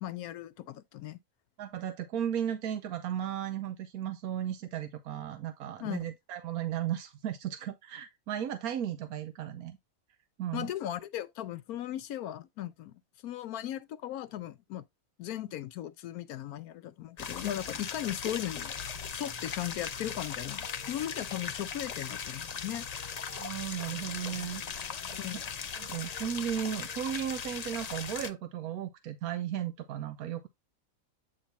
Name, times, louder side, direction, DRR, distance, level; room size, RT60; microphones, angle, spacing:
voice 1, 0.0-1.2 5.8-6.1 10.5-14.8 15.2-18.7 19.1-22.9 25.2-25.4, left 12 dB, 85° left, 1.2 m, -37 dB
voice 2, 1.6-9.8 10.4-10.7 23.3-24.8 25.7-30.5, right 10 dB, 85° right, 1.2 m, -35 dB
sound 1, 17.2-28.3, left 6 dB, 65° left, 0.4 m, -39 dB
8.7 x 2.9 x 4.1 m
omnidirectional pair, 1.5 m